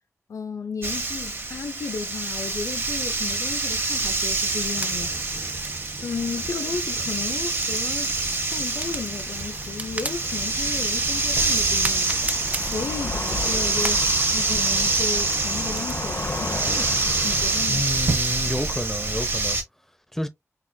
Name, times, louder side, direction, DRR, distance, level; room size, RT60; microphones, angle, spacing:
voice 1, 0.3-5.1 6.0-8.1 8.5-12.1 12.7-14.0 14.3-16.9 17.2-17.8, left 5 dB, 75° left, 0.5 m, -34 dB
sound 1, 0.8-19.6, right 3 dB, 45° right, 1.0 m, -26 dB
sound 2, 4.7-18.1, right 2 dB, 25° right, 0.5 m, -38 dB
sound 3, 9.1-17.7, left 3 dB, 55° left, 0.9 m, -35 dB
voice 2, 17.7-19.6 20.1-20.3, left 1 dB, 5° left, 0.8 m, -29 dB
6.2 x 2.7 x 2.2 m
wide cardioid pair, 100°, 5 cm